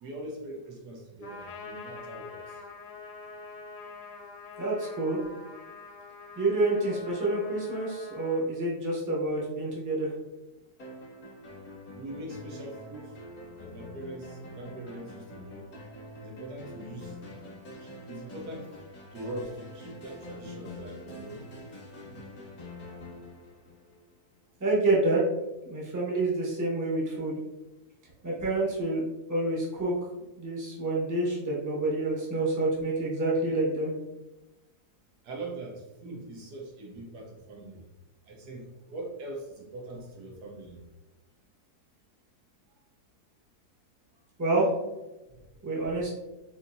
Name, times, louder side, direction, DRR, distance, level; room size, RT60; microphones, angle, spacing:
voice 1, 0.0-2.6 12.0-13.0 13.6-15.6 16.2-17.2 17.7-18.7 19.1-21.4 35.2-37.9 38.3-40.8 45.3-45.6, right 1 dB, 85° right, 0 dB, 1.4 m, -42 dB
Trumpet, 1.2-8.4, left 4 dB, 75° left, 1.3 m, -45 dB
voice 2, 4.6-5.2 6.4-10.1 24.6-25.2 25.6-27.4 28.2-29.9 30.4-33.9 44.4-44.7 45.6-46.1, right 2 dB, 15° right, -4 dB, 0.6 m, -28 dB
sound 1, 10.8-24.3, left 1 dB, 50° left, 1.1 m, -45 dB
4.2 x 2.7 x 2.6 m, 1.0 s
omnidirectional pair, 1.7 m